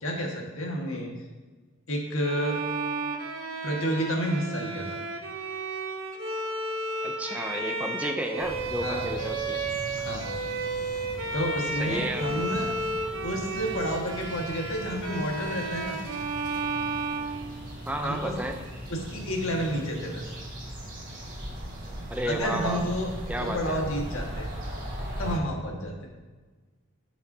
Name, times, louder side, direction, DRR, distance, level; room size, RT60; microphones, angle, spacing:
voice 1, 0.0-1.1 1.9-2.6 3.6-5.0 8.8-9.1 10.1-10.3 11.3-12.7 13.2-16.0 18.0-18.4 18.9-20.3 22.2-23.1 23.4-24.5 25.2-25.9, equal, 70° left, 0 dB, 1.6 m, -30 dB
Bowed string instrument, 2.2-18.1, right 3 dB, 70° right, 0.9 m, -33 dB
voice 2, 7.0-9.6 11.8-12.4 17.9-18.6 22.1-22.8 23.3-23.8, right 1 dB, 5° right, 4 dB, 0.4 m, -32 dB
sound 1, 8.4-25.4, equal, 40° right, 2.1 m, -39 dB
15.5 x 5.9 x 2.7 m, 1.3 s
head